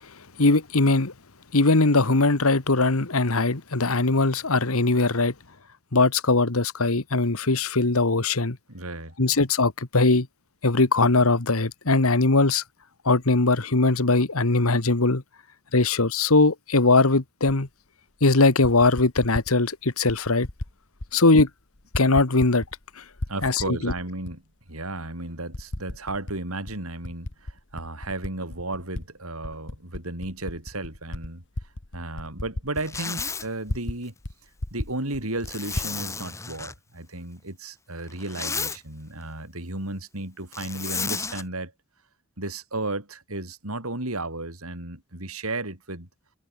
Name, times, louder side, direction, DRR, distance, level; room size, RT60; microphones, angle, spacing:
voice 1, 0.4-1.1 1.5-5.3 5.9-8.6 9.2-10.3 10.6-12.6 13.0-15.2 15.7-17.7 18.2-20.5 21.1-21.5 21.9-22.6 23.0-23.1 23.4-23.9, left 3 dB, 85° left, 1.7 m, -20 dB
voice 2, 8.7-9.4 21.1-21.2 23.3-24.4 24.7-31.4 31.9-34.1 34.7-41.7 42.4-46.1, right 2 dB, 90° right, 6.7 m, -34 dB
Typing, 17.5-17.6 18.4-19.5 20.1-20.7 21.0-21.5 21.8-22.8 23.1-24.3 24.9-25.0 25.5-26.4 26.7-29.0 29.4-34.0 34.2-34.3 34.6-35.9, left 1 dB, 55° left, 1.7 m, -34 dB
Zipper (clothing), 32.8-33.5 35.4-36.8 38.1-38.8 40.5-41.4, left 5 dB, 15° left, 0.7 m, -32 dB
head